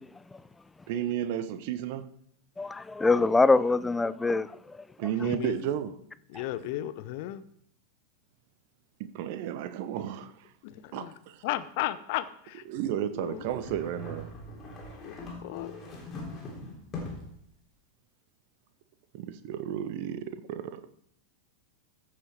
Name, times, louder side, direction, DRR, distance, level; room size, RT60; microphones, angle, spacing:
voice 1, 0.9-2.1 5.0-5.9 9.0-10.5 10.9-11.4 12.7-14.3 19.1-20.8, right 10 dB, 50° right, 1.0 m, -33 dB
voice 2, 2.6-4.8 5.0-5.3, left 3 dB, 10° left, 0.4 m, -24 dB
voice 3, 5.2-5.6 6.3-7.4 10.6-11.1 11.4-13.5 15.0-15.8, left 14 dB, 50° left, 0.7 m, -35 dB
sound 1, 13.3-17.4, left 2 dB, 25° left, 3.5 m, -41 dB
14.5 x 6.7 x 4.7 m
figure-of-eight pair, 90°, 0 cm